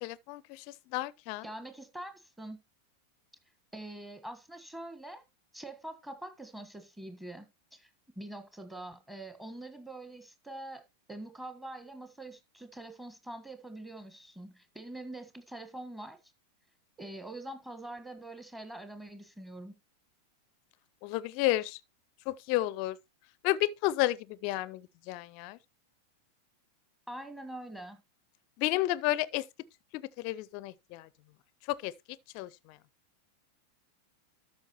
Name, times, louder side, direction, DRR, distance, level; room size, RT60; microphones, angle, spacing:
voice 1, 0.0-1.5 21.0-21.8 22.3-23.0 23.4-25.6 28.6-29.5 29.9-31.1 31.7-31.9 32.3-32.8, left 16 dB, 45° left, 0.4 m, -32 dB
voice 2, 1.4-2.6 3.7-5.2 5.5-7.5 7.7-7.9 8.1-10.8 11.1-16.2 17.0-19.7 27.1-28.0, right 1 dB, 5° right, 1.4 m, -44 dB
13.0 x 5.8 x 3.0 m
figure-of-eight pair, 90°, 0 cm